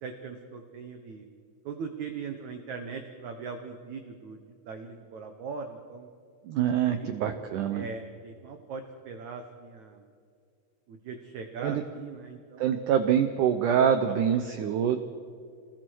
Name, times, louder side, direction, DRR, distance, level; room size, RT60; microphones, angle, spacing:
voice 1, 0.0-1.3 1.6-4.4 4.6-6.1 7.0-7.1 7.7-10.0 10.9-12.7 14.1-14.8, right 5 dB, 70° right, 5 dB, 1.8 m, -40 dB
voice 2, 6.4-7.8 11.6-11.8 12.6-15.0, right 8 dB, 85° right, 8 dB, 1.8 m, -25 dB
28.0 x 20.0 x 4.6 m, 2.3 s
omnidirectional pair, 4.8 m